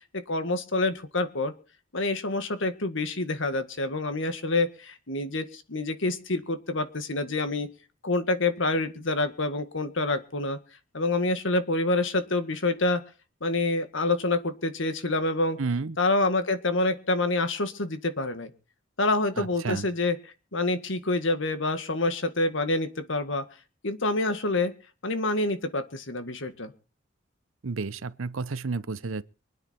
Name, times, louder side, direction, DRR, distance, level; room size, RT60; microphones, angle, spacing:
voice 1, 0.1-1.5 1.9-7.7 8.0-10.6 10.9-13.0 13.4-15.6 16.0-18.5 19.0-20.2 20.5-23.5 23.8-24.7 25.0-26.7, left 2 dB, 70° left, 1.9 m, -27 dB
voice 2, 15.6-16.0 19.4-19.9 27.6-29.2, right 4 dB, 85° right, 0.8 m, -31 dB
24.5 x 9.7 x 4.4 m
head